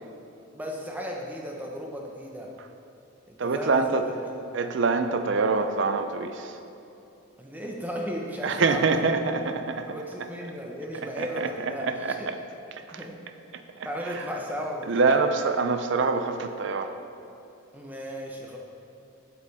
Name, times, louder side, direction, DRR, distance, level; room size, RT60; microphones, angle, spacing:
voice 1, 0.5-2.5 3.3-4.1 7.4-9.4 9.9-12.3 12.9-13.2 13.8-15.2 17.7-18.6, equal, 10° right, -1 dB, 0.8 m, -35 dB
voice 2, 3.4-4.0 4.5-6.6 8.4-9.9 11.2-12.3 12.9-13.0 13.5-13.6 14.9-16.9, right 4 dB, 60° right, 8 dB, 0.5 m, -25 dB
8.4 x 7.5 x 4.2 m, 2.9 s
head